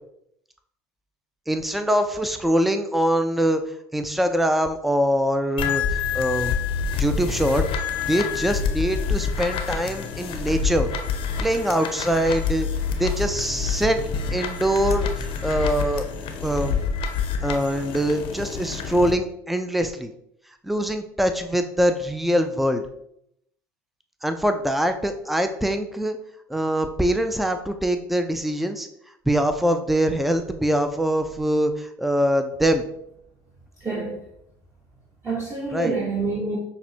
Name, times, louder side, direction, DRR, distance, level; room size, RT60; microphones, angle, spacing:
voice 1, 1.5-3.6 3.9-6.6 6.9-7.6 8.1-10.9 11.4-12.7 13.0-14.0 14.3-16.1 16.4-16.8 17.4-20.1 20.6-22.8 24.2-26.2 26.5-28.9 29.3-32.8 35.7-36.0, equal, ahead, 8 dB, 0.4 m, -23 dB
sound 1, 5.6-19.1, left 5 dB, 55° left, 0.6 m, -27 dB
voice 2, 33.8-34.2 35.2-36.6, right 3 dB, 25° right, -5 dB, 1.0 m, -27 dB
5.8 x 2.1 x 2.7 m, 0.75 s
hypercardioid pair, 75°, 10 cm